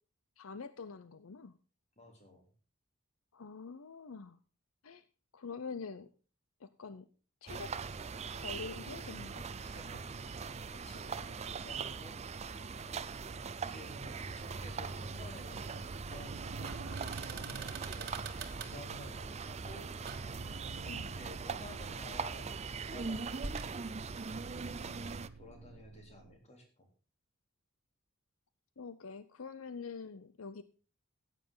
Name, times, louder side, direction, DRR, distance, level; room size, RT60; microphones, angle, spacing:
voice 1, 0.4-1.5 3.3-4.4 4.8-5.0 5.3-6.1 6.6-7.1 7.4-7.7 8.3-9.5 20.9-21.1 28.8-30.6, left 5 dB, 75° left, 13 dB, 0.7 m, -45 dB
voice 2, 2.0-2.5 9.6-12.3 12.8-19.9 21.1-23.5 24.5-26.9, left 1 dB, 30° left, 2 dB, 3.5 m, -54 dB
sound 1, 7.5-25.3, right 5 dB, 30° right, 0.5 m, -41 dB
sound 2, 14.3-23.7, right 4 dB, 50° right, 1.6 m, -49 dB
sound 3, 15.1-26.4, right 3 dB, 90° right, 0.7 m, -51 dB
14.5 x 9.2 x 3.9 m, 0.36 s
head